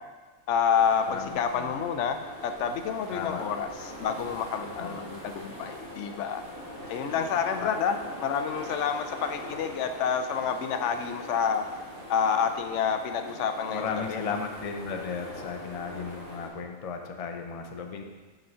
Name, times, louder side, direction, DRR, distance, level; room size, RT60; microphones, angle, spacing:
voice 1, 0.5-6.4 6.9-11.6 12.1-14.4, left 7 dB, 85° left, 7 dB, 0.9 m, -28 dB
sound 1, 0.7-16.5, left 1 dB, 20° right, 1.4 m, -42 dB
voice 2, 1.1-1.8 3.1-3.4 4.7-5.0 7.1-7.3 7.6-7.7 13.7-18.0, left 6 dB, 40° left, 4 dB, 0.5 m, -35 dB
7.1 x 3.9 x 5.5 m, 1.3 s
omnidirectional pair, 1.2 m